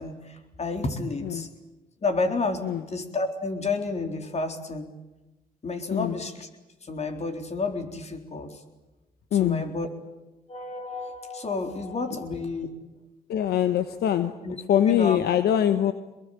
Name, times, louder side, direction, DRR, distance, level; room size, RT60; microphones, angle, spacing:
voice 1, 0.0-1.5 2.0-4.9 5.6-6.5 6.8-8.6 9.4-9.9 10.5-12.7 14.4-14.6 14.9-15.2, left 3 dB, 40° left, 5 dB, 3.9 m, -30 dB
voice 2, 9.3-9.6 13.3-14.3 14.7-15.9, left 10 dB, 70° left, 10 dB, 1.2 m, -23 dB
24.0 x 22.0 x 9.2 m, 1.1 s
supercardioid pair, 55°, 17 cm